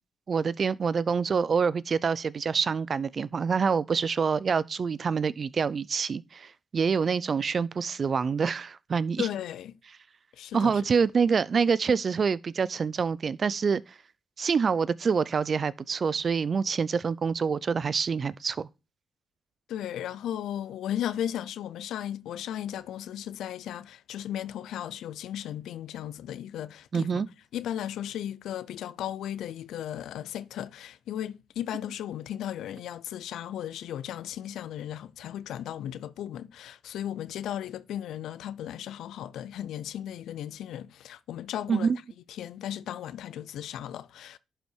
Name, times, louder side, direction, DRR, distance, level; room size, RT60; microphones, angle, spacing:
voice 1, 0.3-9.3 10.5-13.8 14.4-18.7 26.9-27.3 41.7-42.0, right 5 dB, 50° right, 0.5 m, -26 dB
voice 2, 9.2-9.8 10.4-10.8 19.7-27.2 27.5-41.9 42.4-44.4, left 11 dB, 80° left, 0.5 m, -36 dB
11.0 x 5.6 x 4.5 m
supercardioid pair, 65°, 0 cm